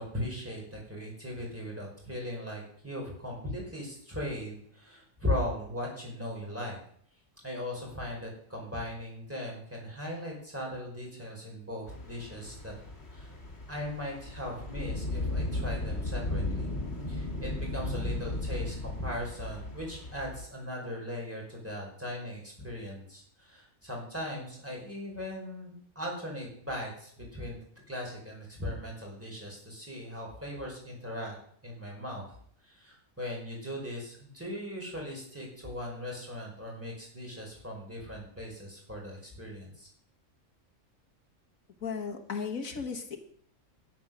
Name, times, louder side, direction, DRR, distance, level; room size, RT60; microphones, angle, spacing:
voice 1, 0.0-6.8 7.4-12.7 13.1-13.3 13.7-16.7 17.1-27.6 27.9-31.3 31.6-32.3 32.6-39.9, left 1 dB, 10° right, -2 dB, 4.9 m, -38 dB
sound 1, 11.9-20.4, left 2 dB, 50° left, 2.4 m, -35 dB
voice 2, 41.8-43.2, left 5 dB, 90° left, 3 dB, 2.0 m, -35 dB
11.5 x 9.9 x 6.4 m, 0.63 s
omnidirectional pair, 1.4 m